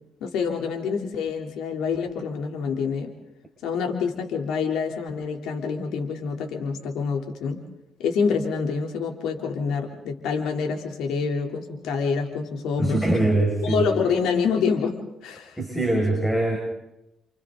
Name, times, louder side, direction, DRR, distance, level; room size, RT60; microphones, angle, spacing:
voice 1, 0.2-3.1 3.6-7.6 8.0-13.0 13.6-15.0 15.2-15.6, left 5 dB, 85° left, 2 dB, 3.6 m, -26 dB
voice 2, 12.8-13.8 15.6-16.6, right 2 dB, 10° left, 1 dB, 6.3 m, -22 dB
29.5 x 28.0 x 4.0 m, 0.87 s
cardioid pair, 90°, 0 cm